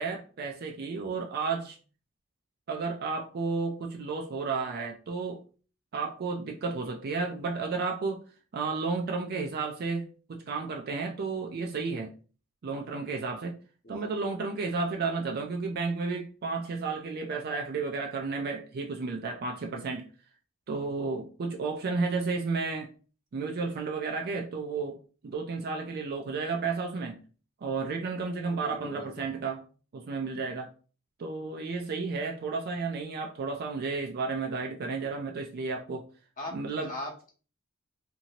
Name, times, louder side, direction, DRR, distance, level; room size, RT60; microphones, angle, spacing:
voice 1, 0.0-1.8 2.7-5.4 5.9-8.2 8.5-12.1 12.6-13.6 13.9-20.1 20.7-22.9 23.3-25.0 25.2-27.2 27.6-29.6 29.9-30.7 31.2-36.1 36.5-36.9, right 4 dB, 45° right, 0.4 m, -32 dB
voice 2, 28.5-29.2 36.4-36.5 36.9-37.3, left 1 dB, 40° left, 0.9 m, -40 dB
2.8 x 2.6 x 2.8 m
head